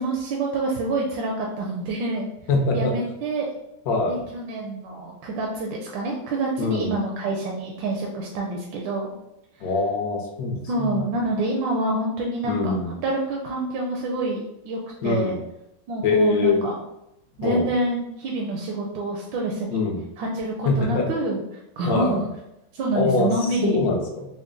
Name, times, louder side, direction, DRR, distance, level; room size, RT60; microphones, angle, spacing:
voice 1, 0.0-2.3 2.7-3.5 4.1-9.1 9.6-9.7 10.7-12.8 13.0-15.4 15.9-16.8 17.4-19.8 20.2-22.2 22.7-23.8, right 2 dB, 85° right, -1 dB, 1.3 m, -27 dB
voice 2, 2.5-2.9 3.9-4.2 6.6-6.9 9.6-11.0 12.4-12.9 15.0-15.4 16.0-16.6 17.4-17.7 19.7-20.0 20.6-21.0 21.8-22.2 22.9-24.3, left 3 dB, 65° left, 1 dB, 1.1 m, -23 dB
3.9 x 2.1 x 3.6 m, 0.85 s
omnidirectional pair, 2.0 m